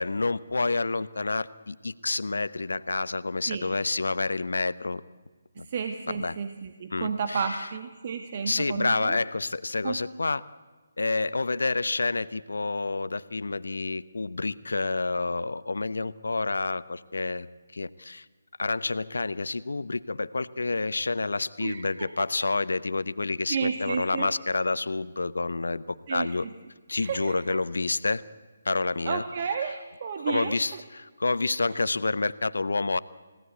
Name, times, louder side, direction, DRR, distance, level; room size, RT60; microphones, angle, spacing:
voice 1, 0.0-5.0 5.6-5.7 6.1-6.4 6.9-7.7 8.5-10.4 11.0-17.5 17.7-18.2 18.6-26.4 26.9-28.2 28.6-29.2 30.3-33.0, left 3 dB, 75° left, 17 dB, 0.8 m, -28 dB
voice 2, 5.6-9.2 9.8-10.0 21.6-22.1 23.5-24.3 26.1-26.3 26.9-27.6 29.0-30.8, right 6 dB, 40° right, 6 dB, 1.6 m, -32 dB
29.5 x 17.5 x 8.2 m, 1.4 s
figure-of-eight pair, 150°, 0 cm